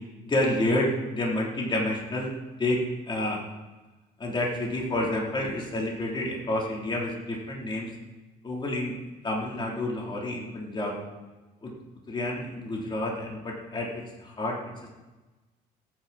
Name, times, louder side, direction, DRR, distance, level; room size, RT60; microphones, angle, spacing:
voice 1, 0.2-2.3 2.6-3.4 4.2-7.9 8.4-9.0 9.2-10.9 11.6-11.7 12.1-14.9, left 1 dB, 30° left, -2 dB, 3.5 m, -29 dB
21.5 x 9.8 x 4.2 m, 1.2 s
cardioid pair, 110°, 17 cm